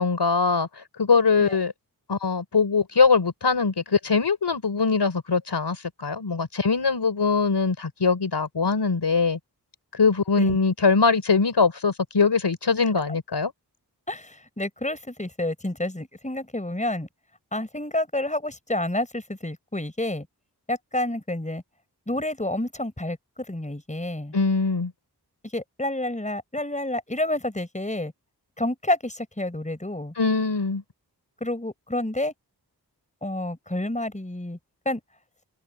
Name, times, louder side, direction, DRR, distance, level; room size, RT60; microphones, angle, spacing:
voice 1, 0.0-1.7 2.1-9.4 9.9-13.5 24.3-24.9 30.2-30.8, left 4 dB, 85° left, 3.9 m, -22 dB
voice 2, 14.1-17.1 17.5-20.3 20.7-21.6 22.1-23.2 23.5-24.3 25.5-28.1 28.6-30.1 31.4-32.3 33.2-34.6 34.8-35.0, left 1 dB, 20° left, 4.7 m, -29 dB
open air
wide cardioid pair, 55°, 40 cm